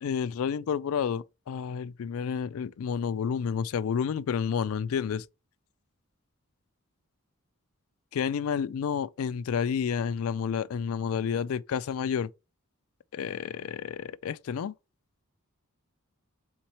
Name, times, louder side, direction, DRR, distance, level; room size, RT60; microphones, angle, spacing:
voice 1, 0.0-5.2 8.1-12.3 13.1-14.7, left 7 dB, 75° left, 0.3 m, -30 dB
4.0 x 3.1 x 4.1 m
head